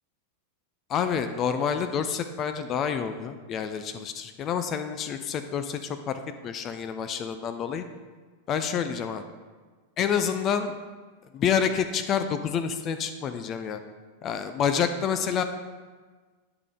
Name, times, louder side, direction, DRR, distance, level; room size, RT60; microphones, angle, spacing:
voice 1, 0.9-7.8 8.5-9.2 10.0-10.8 11.3-13.8 14.2-15.4, left 7 dB, 30° left, 9 dB, 0.5 m, -28 dB
10.5 x 4.9 x 3.5 m, 1.4 s
figure-of-eight pair, 90°, 0 cm